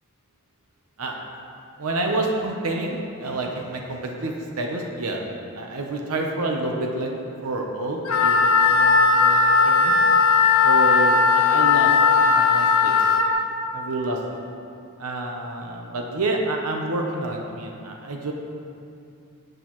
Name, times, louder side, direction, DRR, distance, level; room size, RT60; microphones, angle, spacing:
voice 1, 1.8-5.2 5.5-7.1 7.4-9.9 10.6-11.9 12.2-13.2 13.7-14.2 15.0-18.3, right 2 dB, 85° right, 1 dB, 0.8 m, -28 dB
Wind instrument woodwind instrument, 8.1-13.3, left 5 dB, 70° left, 0.8 m, -17 dB
10.5 x 7.9 x 3.1 m, 2.6 s
head